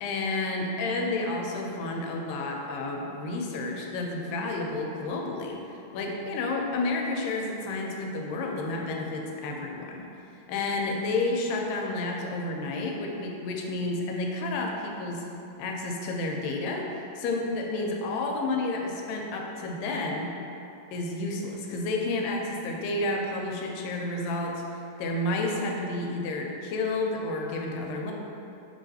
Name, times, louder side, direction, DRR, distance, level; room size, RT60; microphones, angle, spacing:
voice 1, 0.0-10.0 10.5-15.2 15.6-20.3 20.9-28.1, left 2 dB, 85° left, 1 dB, 2.2 m, -30 dB
5.8 x 3.1 x 2.7 m, 2.8 s
omnidirectional pair, 3.9 m